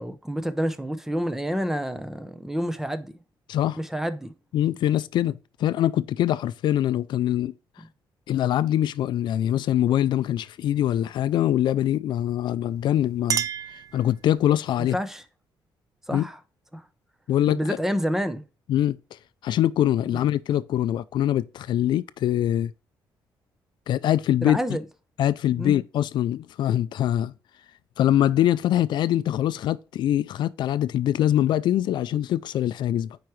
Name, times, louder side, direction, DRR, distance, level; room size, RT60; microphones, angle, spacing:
voice 1, 0.0-3.1 3.8-4.3 14.9-15.2 16.1-16.4 16.7-16.8 17.5-18.4 24.4-24.8 25.6-25.7, equal, 5° right, 0.7 m, -28 dB
voice 2, 4.5-7.5 8.3-13.5 13.9-15.0 16.1-16.3 17.3-17.8 18.7-19.0 19.4-22.7 23.9-24.6 25.2-27.3 28.0-33.2, left 12 dB, 70° left, 0.4 m, -23 dB
Chink clink, 12.7-14.6, right 9 dB, 45° right, 0.3 m, -32 dB
9.1 x 4.8 x 3.2 m
cardioid pair, 135°, 8 cm